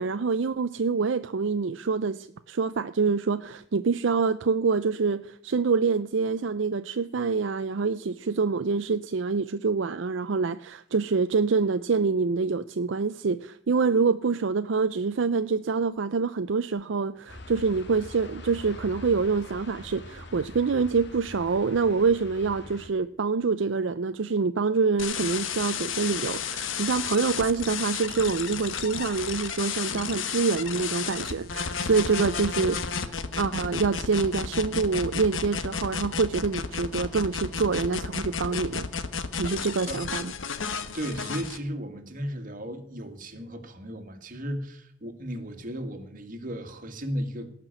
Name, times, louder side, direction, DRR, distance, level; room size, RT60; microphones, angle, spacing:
voice 1, 0.0-38.9 39.4-40.3, right 4 dB, 70° right, 0.5 m, -26 dB
sound 1, 17.3-22.9, left 2 dB, 65° left, 1.8 m, -44 dB
sound 2, 25.0-41.6, left 6 dB, 85° left, 1.2 m, -32 dB
voice 2, 40.6-47.5, equal, 45° right, 2.0 m, -35 dB
18.0 x 6.0 x 8.9 m
head